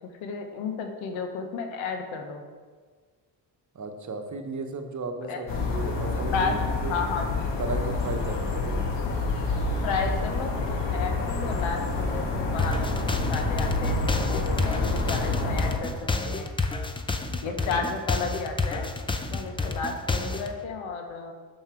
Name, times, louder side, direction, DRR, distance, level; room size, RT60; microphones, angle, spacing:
voice 1, 0.0-2.5 5.3-5.4 6.3-7.3 9.6-15.9 16.2-16.5 17.4-18.9 19.3-21.3, left 5 dB, 80° left, 5 dB, 1.0 m, -33 dB
voice 2, 3.7-6.9 7.6-8.9 17.4-17.9, right 3 dB, 40° right, 5 dB, 1.0 m, -35 dB
sound 1, 5.5-15.8, left 3 dB, 65° left, 1.4 m, -28 dB
sound 2, 12.6-20.5, left 3 dB, 10° left, 0.5 m, -29 dB
5.8 x 5.4 x 4.5 m, 1.5 s
supercardioid pair, 65°, 47 cm